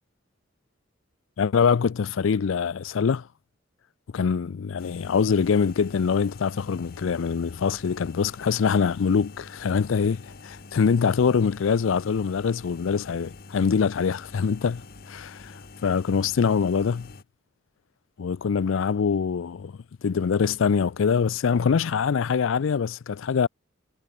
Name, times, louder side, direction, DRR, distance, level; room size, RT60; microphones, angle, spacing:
voice 1, 1.4-3.3 4.1-17.1 18.2-23.5, left 6 dB, 80° left, 0.4 m, -24 dB
sound 1, 4.8-17.2, left 3 dB, 50° left, 0.9 m, -46 dB
head